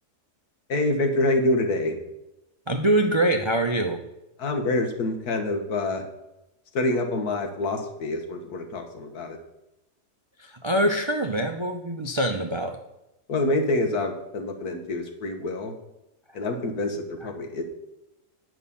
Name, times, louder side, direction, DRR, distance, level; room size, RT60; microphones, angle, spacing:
voice 1, 0.7-2.0 4.4-6.0 6.7-9.4 13.3-15.7 16.3-17.6, left 2 dB, 70° left, 4 dB, 1.8 m, -26 dB
voice 2, 2.7-4.0 10.4-12.8, right 1 dB, 45° right, 4 dB, 0.3 m, -24 dB
9.4 x 6.1 x 7.0 m, 0.92 s
omnidirectional pair, 1.7 m